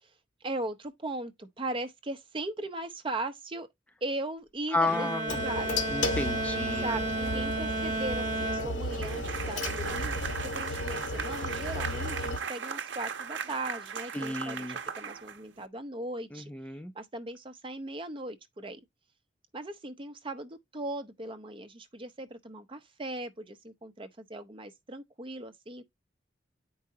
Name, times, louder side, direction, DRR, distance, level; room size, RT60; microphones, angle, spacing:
voice 1, 0.4-3.7 4.0-5.8 6.8-16.5 16.9-18.8 19.5-25.8, right 2 dB, 30° right, 0.7 m, -38 dB
voice 2, 4.7-5.3 5.9-6.9 14.1-14.8 16.3-16.9, left 2 dB, 10° left, 0.4 m, -32 dB
Bowed string instrument, 4.9-9.3, right 2 dB, 45° right, 1.4 m, -33 dB
sound 1, 5.3-12.4, left 2 dB, 80° left, 1.4 m, -34 dB
sound 2, 8.9-15.7, right 6 dB, 75° right, 0.7 m, -37 dB
8.7 x 4.7 x 2.7 m
head